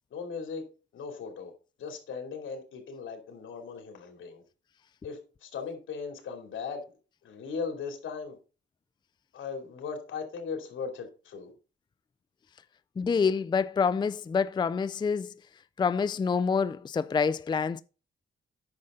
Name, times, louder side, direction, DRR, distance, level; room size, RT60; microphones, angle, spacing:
voice 1, 0.1-0.6 0.9-1.5 1.8-4.4 5.0-6.8 7.2-8.4 9.3-11.5, left 5 dB, 85° left, 2.8 m, -38 dB
voice 2, 13.0-15.3 15.8-17.8, left 5 dB, 25° left, 0.4 m, -27 dB
9.6 x 6.5 x 3.8 m
cardioid pair, 110°, 20 cm